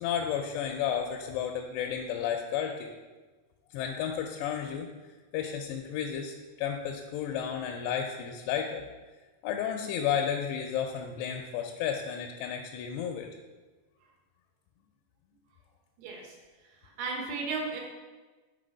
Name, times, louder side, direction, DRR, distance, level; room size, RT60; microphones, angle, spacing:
voice 1, 0.0-2.9 3.7-4.9 5.3-8.9 9.4-13.3, left 8 dB, 85° left, 3 dB, 2.6 m, -32 dB
voice 2, 16.0-16.3 16.8-17.8, right 4 dB, 80° right, 1 dB, 3.2 m, -34 dB
6.7 x 3.9 x 5.1 m, 1.3 s
omnidirectional pair, 4.8 m